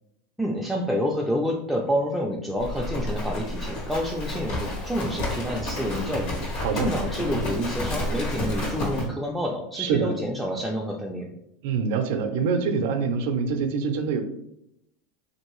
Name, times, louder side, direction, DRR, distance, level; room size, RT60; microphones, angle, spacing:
voice 1, 0.4-11.3, equal, 5° right, -2 dB, 0.3 m, -28 dB
Livestock farm animals working animals, 2.6-9.1, left 1 dB, 65° left, 1.2 m, -30 dB
voice 2, 9.8-10.2 11.6-14.2, right 5 dB, 70° right, 7 dB, 0.4 m, -25 dB
3.0 x 2.6 x 3.0 m, 0.80 s
supercardioid pair, 130°, 0 cm